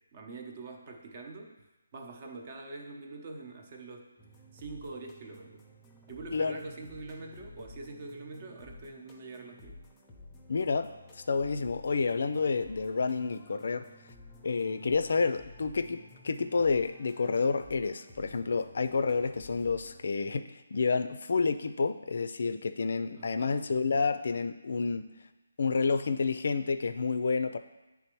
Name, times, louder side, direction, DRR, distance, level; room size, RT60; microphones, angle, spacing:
voice 1, 0.1-1.6 1.9-4.1 4.5-5.6 6.1-9.8 23.2-23.6, right 3 dB, 35° right, 3 dB, 0.8 m, -44 dB
sound 1, 4.2-20.1, left 2 dB, 10° left, 0.7 m, -53 dB
voice 2, 10.5-10.9 11.2-13.9 14.4-25.1 25.6-27.6, left 4 dB, 60° left, 10 dB, 0.4 m, -29 dB
8.8 x 3.5 x 3.0 m, 1.1 s
figure-of-eight pair, 155°, 0 cm